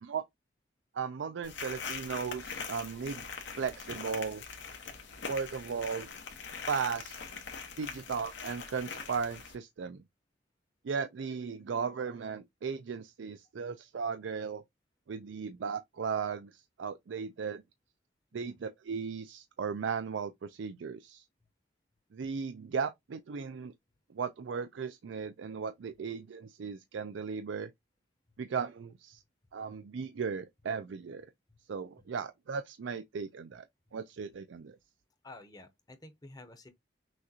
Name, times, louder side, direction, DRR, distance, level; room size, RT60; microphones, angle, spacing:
voice 1, 0.9-3.3 3.6-4.4 5.3-6.1 6.7-7.2 7.8-10.0 10.8-14.6 15.1-17.6 18.3-21.2 22.1-23.7 24.1-27.7 28.4-29.2 29.5-31.3 31.7-33.6 33.9-34.8, right 6 dB, 85° right, 0.4 m, -36 dB
sound 1, 1.4-9.5, left 5 dB, 80° left, 1.2 m, -42 dB
voice 2, 35.2-36.7, left 2 dB, 20° left, 0.8 m, -51 dB
6.2 x 2.4 x 2.8 m
head